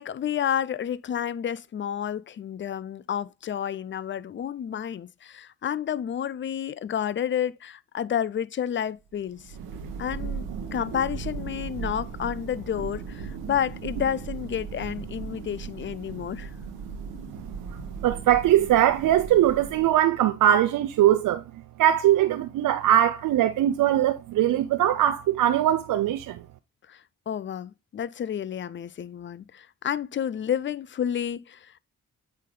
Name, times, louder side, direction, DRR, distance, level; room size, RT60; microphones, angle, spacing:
voice 1, 0.0-9.5 10.0-16.5 26.9-31.8, left 9 dB, 35° left, 0.5 m, -30 dB
Thunder, 9.2-20.2, right 6 dB, 85° right, 1.1 m, -37 dB
voice 2, 18.0-21.4 21.8-26.4, right 12 dB, 65° right, 0.5 m, -21 dB
8.3 x 3.3 x 3.8 m
supercardioid pair, 45°, 35 cm